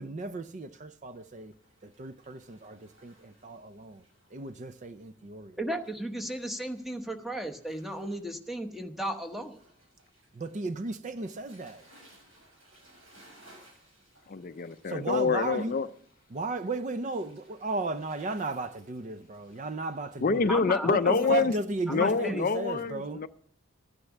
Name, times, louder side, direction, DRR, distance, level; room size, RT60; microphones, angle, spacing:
voice 1, 0.0-1.5 1.8-4.0 4.3-5.6 10.3-11.8 14.9-15.7 16.3-20.5 20.9-23.2, right 3 dB, 35° right, 0.4 m, -35 dB
Waves surf, 0.9-20.3, right 1 dB, 75° right, 6.7 m, -62 dB
voice 2, 5.6-9.6 20.5-21.4 21.9-22.4, right 1 dB, ahead, 0.9 m, -35 dB
voice 3, 14.3-15.9 20.2-21.5 21.9-23.3, left 5 dB, 40° left, 0.4 m, -26 dB
13.0 x 9.8 x 7.1 m
head